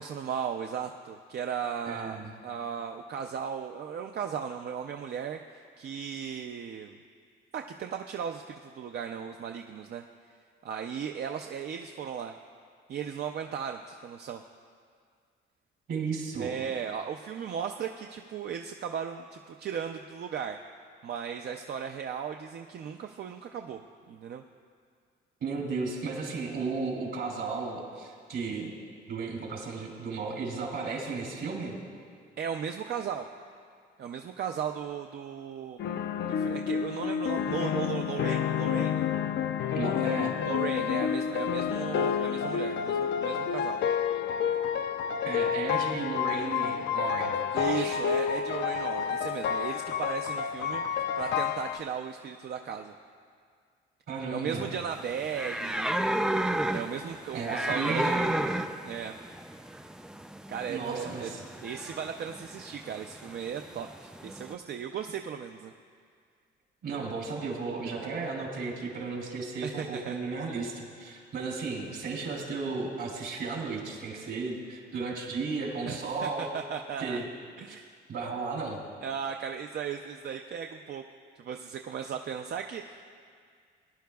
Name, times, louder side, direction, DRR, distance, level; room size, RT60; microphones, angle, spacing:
voice 1, 0.0-2.2 2.4-7.0 7.5-10.0 10.6-12.3 12.9-14.4 16.4-20.6 21.0-23.8 24.1-24.4 32.4-33.3 34.0-35.8 36.2-39.1 40.4-43.8 47.5-50.8 51.2-52.9 54.3-56.0 56.7-58.1 58.8-59.2 60.5-61.3 61.6-65.7 67.9-68.1 69.6-70.1 75.9-77.2 77.6-78.0 79.0-81.0 81.4-83.0, right 7 dB, 55° right, 4 dB, 0.5 m, -36 dB
voice 2, 1.8-2.3 15.9-16.5 25.4-28.7 29.1-31.8 39.7-40.4 45.2-48.0 54.1-54.7 57.3-58.2 60.7-61.4 66.8-76.5 77.0-77.2 77.7-77.8 78.1-78.8, right 4 dB, 70° right, -1 dB, 3.2 m, -34 dB
sound 1, 35.8-51.8, left 8 dB, 60° left, 0.5 m, -29 dB
sound 2, 54.9-64.5, right 1 dB, 5° right, 0.4 m, -33 dB
20.0 x 10.5 x 2.3 m, 2.1 s
cardioid pair, 90°, 20 cm